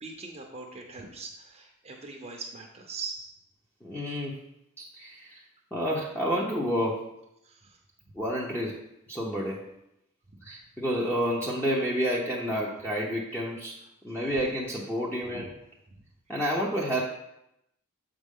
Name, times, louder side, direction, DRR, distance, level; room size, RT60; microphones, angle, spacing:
voice 1, 0.0-3.3 7.4-7.8 10.4-10.5 15.3-15.5, right 4 dB, 30° right, 0 dB, 0.7 m, -41 dB
voice 2, 3.8-4.4 4.8-5.4 5.7-7.1 8.1-8.8 9.1-9.6 10.4-13.8 14.0-15.5 16.3-17.0, equal, 10° left, -5 dB, 0.7 m, -29 dB
7.3 x 5.1 x 3.7 m, 0.83 s
head